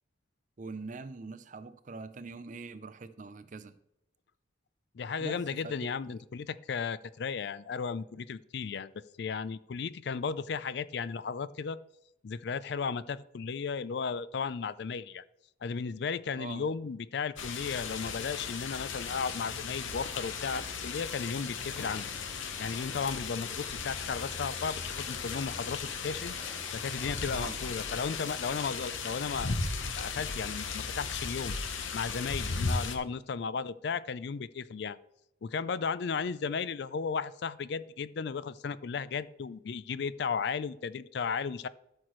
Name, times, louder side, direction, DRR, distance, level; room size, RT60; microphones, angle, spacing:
voice 1, 0.6-3.8 5.2-5.9 16.4-16.7 27.3-27.6, right 4 dB, 40° right, 13 dB, 0.5 m, -43 dB
voice 2, 4.9-8.9 9.2-11.8 12.2-15.2 15.6-22.0 22.6-26.3 26.7-29.5 30.0-31.6 31.9-35.0 35.4-41.7, left 5 dB, 60° left, 17 dB, 0.4 m, -35 dB
sound 1, 17.4-33.0, left 5 dB, 80° left, 1.0 m, -36 dB
sound 2, 20.1-29.1, equal, 10° left, 1.6 m, -53 dB
12.5 x 6.3 x 3.1 m, 0.84 s
head